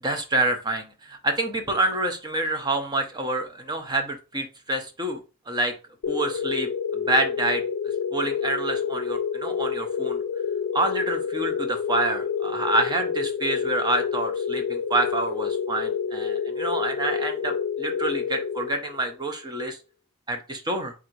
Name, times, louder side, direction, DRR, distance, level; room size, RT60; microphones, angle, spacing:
voice 1, 0.0-5.7 6.1-7.6 8.1-10.2 10.7-19.8 20.3-20.9, right 2 dB, 20° right, 5 dB, 0.6 m, -27 dB
sound 1, 6.0-19.2, left 6 dB, 65° left, 0.4 m, -28 dB
3.7 x 2.6 x 4.5 m, 0.31 s
head